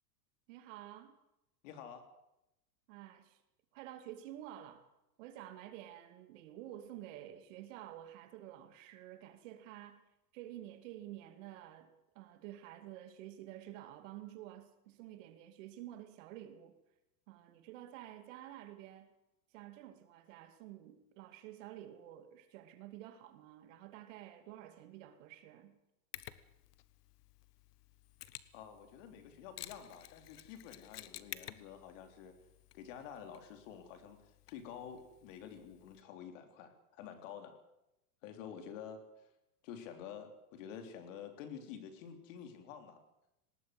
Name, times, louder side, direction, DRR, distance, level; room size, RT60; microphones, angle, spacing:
voice 1, 0.5-1.1 2.9-3.4 3.7-4.8 5.2-10.0 10.3-16.8 17.3-19.1 19.5-25.8, right 13 dB, 55° right, 2.7 m, -50 dB
voice 2, 1.6-2.0 28.5-32.4 32.7-34.2 34.5-37.6 38.2-39.0 39.6-43.0, left 8 dB, 55° left, 3.6 m, -49 dB
Mechanisms, 26.1-36.0, left 13 dB, 85° left, 1.3 m, -53 dB
19.5 x 17.5 x 7.9 m
supercardioid pair, 155°, 46 cm